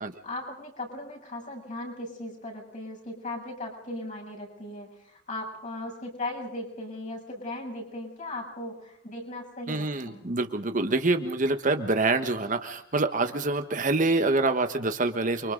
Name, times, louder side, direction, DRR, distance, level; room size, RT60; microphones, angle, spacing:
voice 1, 0.0-10.3, left 2 dB, 45° left, -1 dB, 7.4 m, -38 dB
voice 2, 9.7-15.5, right 2 dB, 45° right, 7 dB, 1.2 m, -26 dB
29.0 x 24.5 x 3.9 m, 0.71 s
head